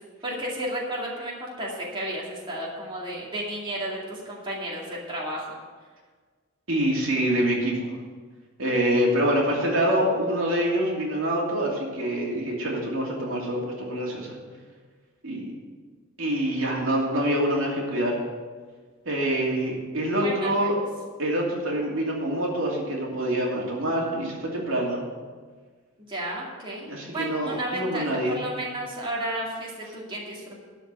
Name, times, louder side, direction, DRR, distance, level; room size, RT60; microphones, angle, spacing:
voice 1, 0.2-5.5 20.2-20.8 26.1-30.6, right 1 dB, 25° right, -4 dB, 2.3 m, -33 dB
voice 2, 6.7-7.9 8.6-14.4 15.2-15.5 16.2-18.2 19.0-20.7 21.2-25.0 26.9-28.4, right 1 dB, 80° right, -2 dB, 2.6 m, -25 dB
12.0 x 5.1 x 8.8 m, 1.5 s
head